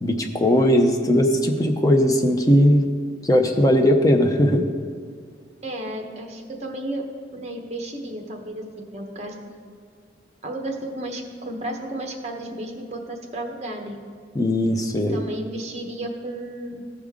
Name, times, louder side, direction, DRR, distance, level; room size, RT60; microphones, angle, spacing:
voice 1, 0.0-2.8 3.2-4.7 14.3-15.2, equal, 20° left, 3 dB, 0.6 m, -18 dB
voice 2, 5.6-7.0 7.3-9.7 10.4-14.0 15.1-16.9, right 1 dB, 35° right, 2 dB, 1.0 m, -33 dB
14.5 x 5.1 x 3.6 m, 2.1 s
head